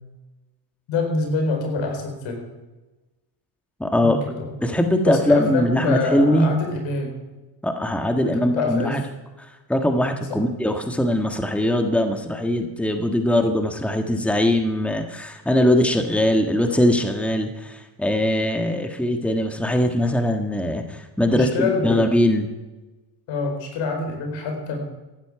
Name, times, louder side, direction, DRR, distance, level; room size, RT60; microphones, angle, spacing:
voice 1, 0.9-2.5 4.0-4.5 5.0-7.2 8.1-9.0 10.3-10.4 21.3-22.0 23.3-24.9, left 3 dB, 75° left, 3 dB, 4.4 m, -26 dB
voice 2, 3.8-4.2 4.6-6.5 7.6-9.0 9.4-22.5, left 1 dB, 5° left, 5 dB, 1.6 m, -21 dB
15.0 x 12.0 x 4.8 m, 1.1 s
supercardioid pair, 85°, 45 cm